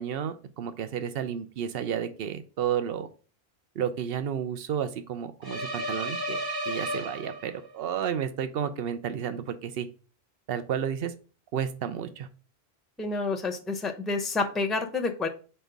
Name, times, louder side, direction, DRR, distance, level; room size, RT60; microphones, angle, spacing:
voice 1, 0.0-3.1 3.8-9.9 10.5-11.1 11.5-12.3, right 8 dB, 70° right, 11 dB, 0.9 m, -32 dB
sound 1, 5.4-7.8, right 1 dB, 25° right, 0.9 m, -33 dB
voice 2, 13.0-15.3, left 3 dB, ahead, 4 dB, 0.6 m, -29 dB
4.5 x 4.3 x 5.2 m, 0.37 s
omnidirectional pair, 1.1 m